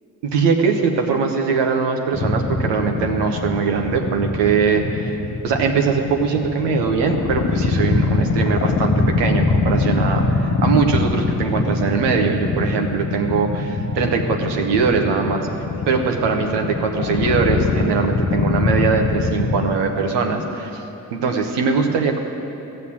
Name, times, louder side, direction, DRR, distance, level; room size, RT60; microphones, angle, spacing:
voice 1, 0.2-15.5 15.9-20.8 21.1-22.2, right 5 dB, 90° right, 3 dB, 1.1 m, -21 dB
sound 1, 2.1-19.7, left 3 dB, 45° left, 1.1 m, -22 dB
14.5 x 6.6 x 8.7 m, 2.9 s
supercardioid pair, 45°, 41 cm